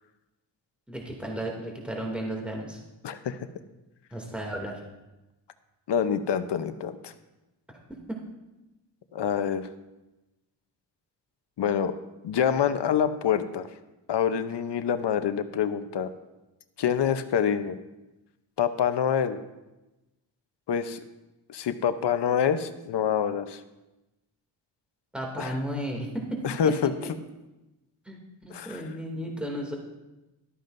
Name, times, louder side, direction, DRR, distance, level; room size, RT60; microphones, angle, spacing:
voice 1, 0.9-2.8 4.1-4.8 25.1-26.1 28.1-28.2 28.5-29.8, equal, 5° right, -1 dB, 2.5 m, -34 dB
voice 2, 3.0-3.4 5.9-7.1 9.1-9.7 11.6-11.9 12.2-13.7 14.1-16.1 16.8-17.8 18.6-19.4 20.7-21.0 21.5-23.6 25.4-25.5 26.4-26.9 28.5-28.8, left 8 dB, 70° left, 10 dB, 0.9 m, -26 dB
13.0 x 12.5 x 2.6 m, 1.0 s
cardioid pair, 80°, 43 cm